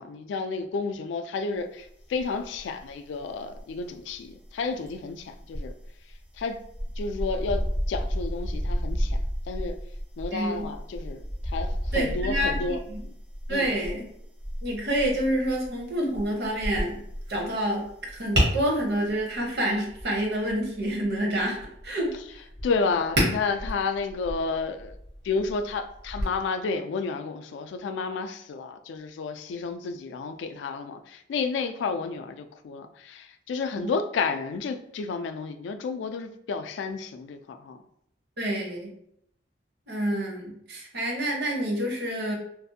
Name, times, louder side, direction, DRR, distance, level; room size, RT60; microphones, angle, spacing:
voice 1, 0.0-5.7 6.4-6.6 7.0-9.2 9.5-9.8 10.2-13.1 13.5-13.7 22.6-24.9 25.2-37.8, left 4 dB, 85° left, 0.3 m, -31 dB
sound 1, 2.1-2.9 3.2-16.7 17.0-17.2, equal, 5° right, 0.4 m, -32 dB
voice 2, 10.3-10.7 11.9-13.0 13.5-14.1 14.6-17.0 17.3-21.6 21.8-22.1 33.8-33.9 38.4-38.9 39.9-42.4, right 1 dB, 60° right, 0.8 m, -28 dB
Tap, 16.5-26.2, equal, 80° right, 1.2 m, -33 dB
2.5 x 2.4 x 2.6 m
head